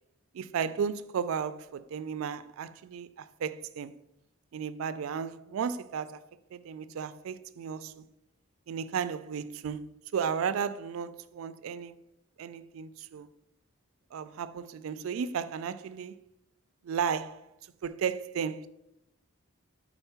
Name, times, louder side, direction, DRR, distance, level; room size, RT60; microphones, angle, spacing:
voice 1, 0.3-3.9 4.5-6.2 6.5-8.1 8.7-12.0 12.4-13.3 14.1-16.1 16.8-17.4 17.8-18.7, right 7 dB, 75° right, 0.3 m, -34 dB
4.5 x 4.2 x 5.6 m
head